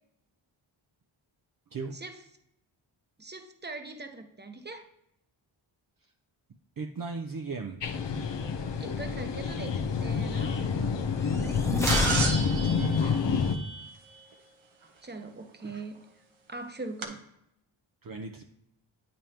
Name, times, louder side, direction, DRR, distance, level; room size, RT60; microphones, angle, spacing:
voice 1, 3.2-4.9 8.8-10.7 15.0-16.0 16.5-17.3, right 3 dB, 20° right, 6 dB, 1.0 m, -41 dB
voice 2, 6.8-7.8 12.4-13.3 18.0-18.4, right 4 dB, 45° right, 4 dB, 0.6 m, -38 dB
sound 1, 7.8-13.5, left 5 dB, 60° left, 0.7 m, -28 dB
sound 2, 11.2-13.0, left 1 dB, 5° left, 1.0 m, -30 dB
sound 3, 11.9-14.2 15.8-15.9 17.0-17.1, right 3 dB, 70° right, 1.1 m, -32 dB
8.8 x 5.3 x 2.9 m, 0.79 s
cardioid pair, 55°, 49 cm